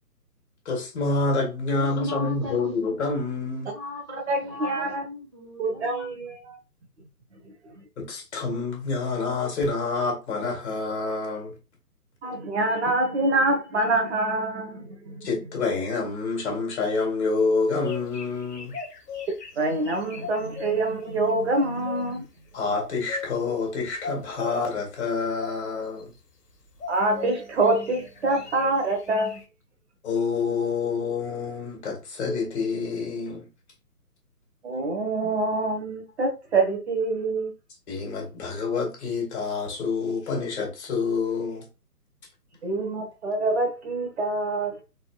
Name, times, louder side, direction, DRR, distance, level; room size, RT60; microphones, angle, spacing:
voice 1, 0.7-3.7 8.0-11.5 15.2-18.7 22.5-26.1 30.0-33.5 37.9-41.7, left 4 dB, 45° left, 2.2 m, -27 dB
voice 2, 1.7-2.8 3.7-6.1, left 2 dB, 20° right, 0.4 m, -37 dB
voice 3, 4.3-5.0 5.6-6.6 7.3-7.9 12.2-15.3 19.5-22.2 26.9-29.4 34.6-37.5 42.6-44.8, right 2 dB, 45° right, 1.3 m, -26 dB
sound 1, 17.6-20.8 21.5-22.2 22.7-23.3 24.0-24.6 25.4-26.0 26.8-27.3 27.6-29.4, left 6 dB, 75° left, 1.4 m, -37 dB
4.1 x 4.1 x 2.4 m
figure-of-eight pair, 145°, 47 cm